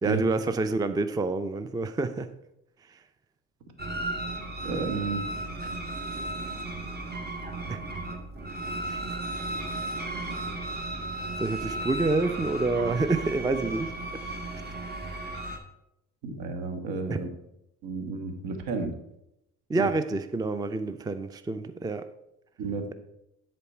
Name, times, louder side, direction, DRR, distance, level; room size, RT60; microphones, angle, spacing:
voice 1, 0.0-2.3 7.7-7.8 8.9-9.0 11.4-13.9 17.1-17.2 19.7-22.1, right 3 dB, 10° right, 0.5 m, -28 dB
sound 1, 3.8-15.6, right 2 dB, 25° right, 1.7 m, -35 dB
voice 2, 4.6-5.3 16.2-17.3 17.8-18.9 19.8-19.9 22.6-22.9, right 4 dB, 70° right, 1.5 m, -31 dB
9.8 x 4.3 x 4.5 m
hypercardioid pair, 65°, 37 cm